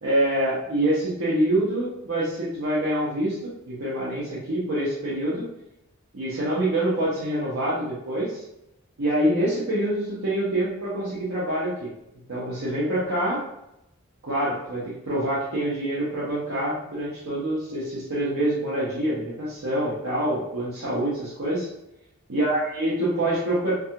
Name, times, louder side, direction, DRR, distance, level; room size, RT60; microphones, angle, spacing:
voice 1, 0.0-5.4 6.1-8.4 9.0-11.9 12.3-13.4 14.2-21.7 22.3-23.7, right 1 dB, 80° right, -9 dB, 0.7 m, -26 dB
2.3 x 2.3 x 2.8 m, 0.84 s
head